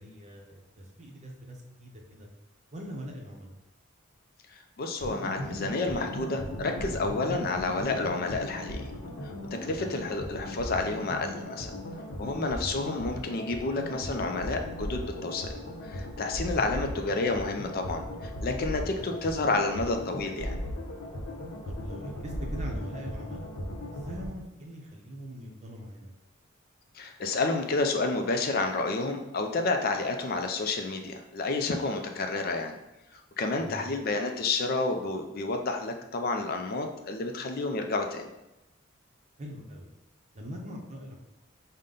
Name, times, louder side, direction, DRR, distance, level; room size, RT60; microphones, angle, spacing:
voice 1, 0.0-2.3 2.7-3.5 9.8-9.9 18.9-19.0 21.7-23.5 23.9-26.1 33.6-33.8 39.4-39.9 40.3-41.2, equal, 35° right, 1 dB, 0.7 m, -42 dB
voice 2, 4.8-8.9 9.2-9.3 9.6-11.7 12.2-15.5 15.8-20.6 26.9-32.8 33.1-38.3, left 3 dB, 50° left, 4 dB, 0.4 m, -30 dB
sound 1, 5.0-24.3, left 1 dB, 80° left, 0.8 m, -37 dB
5.2 x 2.2 x 3.7 m, 0.94 s
head